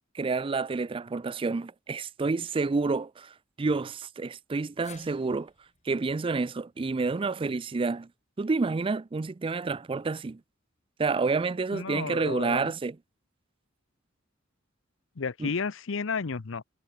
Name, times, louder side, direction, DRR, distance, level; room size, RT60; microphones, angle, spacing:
voice 1, 0.1-5.5 5.9-8.1 8.4-10.4 11.0-13.0 15.4-15.5, right 4 dB, 25° right, 0.4 m, -29 dB
sound 1, 4.8-9.1 9.4-9.5 10.7-10.8, left 7 dB, 35° left, 4.6 m, -58 dB
voice 2, 11.7-12.6 15.2-16.6, left 5 dB, 70° left, 0.7 m, -32 dB
head